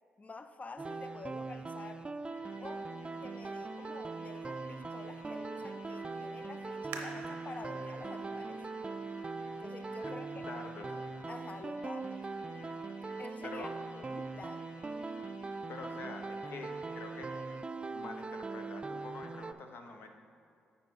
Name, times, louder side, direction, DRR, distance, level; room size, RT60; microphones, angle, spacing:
voice 1, 0.2-2.2 2.6-2.9 3.2-8.6 9.6-10.5 11.3-12.3 13.2-14.7, left 3 dB, 35° left, 8 dB, 0.5 m, -48 dB
sound 1, 0.8-19.5, right 3 dB, 25° right, 0.3 m, -41 dB
sound 2, 2.2-17.6, equal, 90° left, 1.6 m, -54 dB
sound 3, 6.9-10.3 10.9-11.0 11.6-12.0 12.4-12.5, right 4 dB, 85° right, 0.7 m, -49 dB
voice 2, 10.0-10.9 13.4-13.7 15.7-17.3 17.9-20.1, left 3 dB, 65° left, 4 dB, 0.8 m, -46 dB
9.3 x 4.3 x 4.6 m, 2.4 s
supercardioid pair, 50°, 4 cm